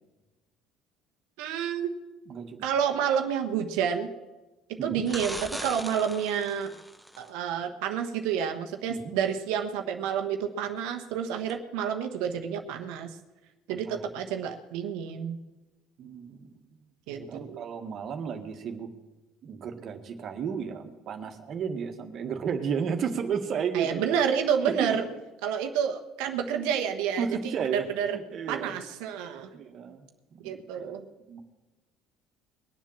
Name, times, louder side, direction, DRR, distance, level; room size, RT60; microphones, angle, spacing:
voice 1, 1.4-1.9 2.6-4.1 4.7-6.7 7.2-13.2 13.7-15.4 17.1-17.6 23.7-25.1 25.4-28.2 28.5-29.5 30.4-31.0, right 8 dB, 75° right, 5 dB, 1.2 m, -29 dB
voice 2, 2.3-2.7 4.8-5.1 8.9-9.1 13.7-14.0 16.0-16.6 17.2-18.9 19.4-24.1 24.6-25.0 27.2-28.7 29.5-30.0 30.3-30.9 31.3-31.4, right 7 dB, 55° right, 5 dB, 1.8 m, -33 dB
sound 1, 5.1-7.3 11.5-11.6, equal, ahead, 0.9 m, -39 dB
21.5 x 7.4 x 7.3 m, 1.1 s
hypercardioid pair, 70°, 0 cm